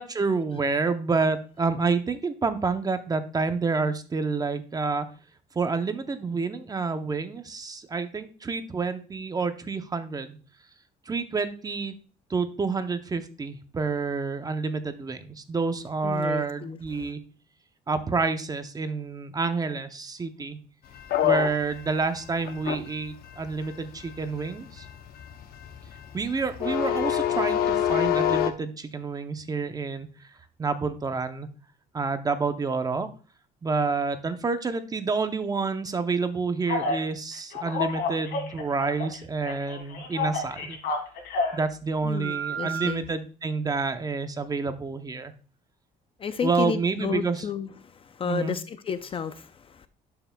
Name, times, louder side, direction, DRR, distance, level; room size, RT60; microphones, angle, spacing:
voice 1, 0.0-5.1 5.5-10.4 11.1-11.9 12.3-17.2 17.9-20.6 21.2-24.9 26.1-30.1 30.6-31.5 31.9-33.1 33.6-40.8 41.5-45.3 46.4-47.4 48.2-48.6, right 4 dB, 20° right, 0.7 m, -28 dB
voice 2, 16.0-17.1 42.0-43.1 46.2-49.9, left 7 dB, 35° left, 0.5 m, -32 dB
sound 1, 21.0-28.5, left 10 dB, 65° left, 0.7 m, -27 dB
Telephone, 36.7-37.0 37.5-39.2 39.4-41.6 42.2-42.9, left 2 dB, 85° left, 2.4 m, -30 dB
11.0 x 5.8 x 2.2 m
cardioid pair, 120°, 17 cm